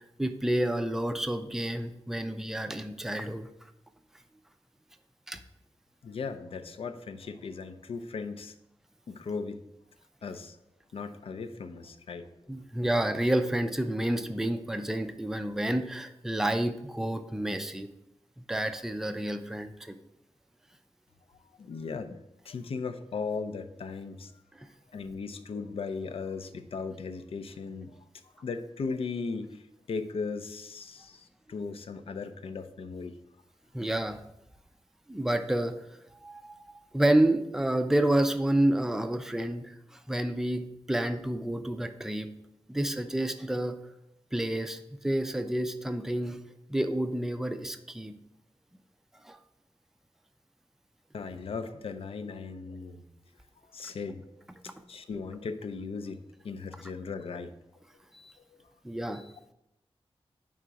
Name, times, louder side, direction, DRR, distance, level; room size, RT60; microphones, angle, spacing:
voice 1, 0.0-3.5 5.3-5.4 12.5-17.9 18.5-19.9 33.7-34.2 35.1-35.7 36.2-42.3 42.7-43.8 44.3-46.4 46.7-48.1 49.2-49.4 58.1-58.3 58.8-59.3, right 1 dB, 5° right, 8 dB, 0.4 m, -29 dB
voice 2, 6.0-8.5 9.1-9.6 10.2-10.6 10.9-12.5 21.4-22.2 22.4-24.4 24.9-28.0 28.4-33.2 51.1-53.0 53.7-54.3 54.9-57.5 58.5-58.6, left 4 dB, 75° left, 9 dB, 0.5 m, -37 dB
5.0 x 3.6 x 5.7 m, 0.83 s
wide cardioid pair, 135°, 10 cm